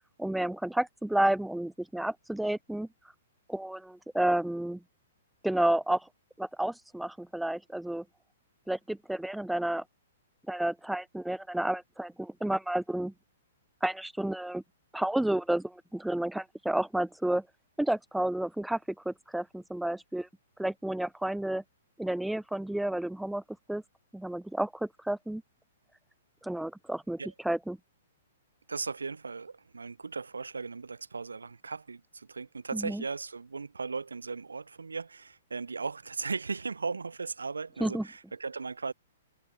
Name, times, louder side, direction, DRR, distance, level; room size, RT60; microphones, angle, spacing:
voice 1, 0.2-2.9 3.5-4.8 5.4-6.1 6.4-8.0 8.7-9.8 10.5-13.1 13.8-14.6 14.9-17.5 17.8-20.3 20.6-21.6 22.0-23.4 23.7-23.8 24.1-25.4 26.4-27.8 32.7-33.0 37.8-38.1, right 1 dB, ahead, 0.4 m, -31 dB
voice 2, 28.7-38.9, right 4 dB, 75° right, 0.4 m, -37 dB
figure-of-eight pair, 115°, 0 cm